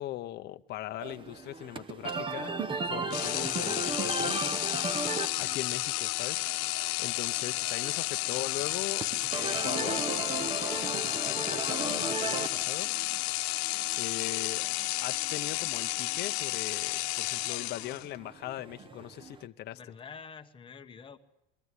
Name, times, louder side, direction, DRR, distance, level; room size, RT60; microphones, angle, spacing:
voice 1, 0.0-2.5 2.9-4.4 5.4-6.4 7.0-9.0 9.3-12.9 14.0-14.7 15.0-19.8, left 14 dB, 35° left, 9 dB, 0.7 m, -40 dB
sound 1, 1.0-19.5, right 4 dB, 15° right, 0.7 m, -38 dB
sound 2, 3.1-18.2, left 20 dB, 85° left, 0.9 m, -32 dB
sound 3, 4.1-9.1 9.4-9.9 10.2-10.8 11.1-11.5 11.9-12.5 12.8-13.3 13.6-14.1 14.5-14.9 15.3-15.8 16.2-16.6 17.0-17.5, left 16 dB, 60° left, 1.1 m, -53 dB
voice 2, 19.7-21.2, left 6 dB, 15° left, 6 dB, 1.0 m, -47 dB
22.5 x 16.0 x 9.6 m, 0.95 s
cardioid pair, 165°, 31 cm